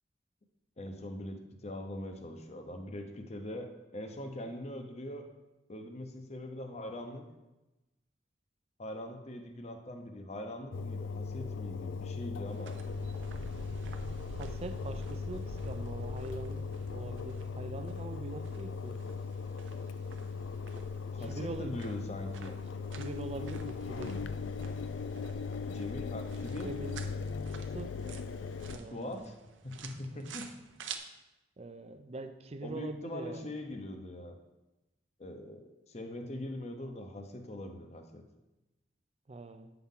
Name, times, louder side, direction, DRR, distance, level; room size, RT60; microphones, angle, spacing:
voice 1, 0.8-5.3 5.7-7.3 8.8-12.8 21.1-22.6 25.7-26.7 28.9-29.3 29.6-30.5 32.6-34.4 35.2-38.2, left 1 dB, 35° left, 5 dB, 0.8 m, -42 dB
Engine, 10.7-28.8, left 5 dB, 85° left, 0.3 m, -39 dB
sound 1, 12.5-31.0, right 6 dB, 85° right, 0.7 m, -52 dB
sound 2, 12.8-19.0, equal, 10° right, 0.9 m, -45 dB
voice 2, 14.3-19.0 21.2-21.7 22.9-24.2 26.6-27.0 27.6-28.0 28.7-29.3 31.6-33.5 39.3-39.7, right 2 dB, 35° right, 9 dB, 0.5 m, -43 dB
8.3 x 5.8 x 3.7 m, 1.0 s
head